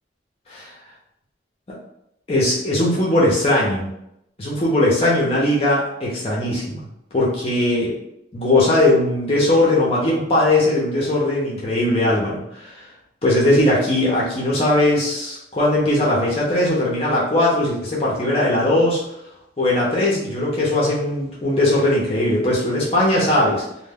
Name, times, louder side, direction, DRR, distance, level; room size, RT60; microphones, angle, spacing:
voice 1, 2.3-3.9 4.4-6.8 7.1-7.9 8.3-12.7 13.2-19.0 19.6-23.6, left 1 dB, 35° left, -5 dB, 0.5 m, -19 dB
2.1 x 2.0 x 3.4 m, 0.81 s
head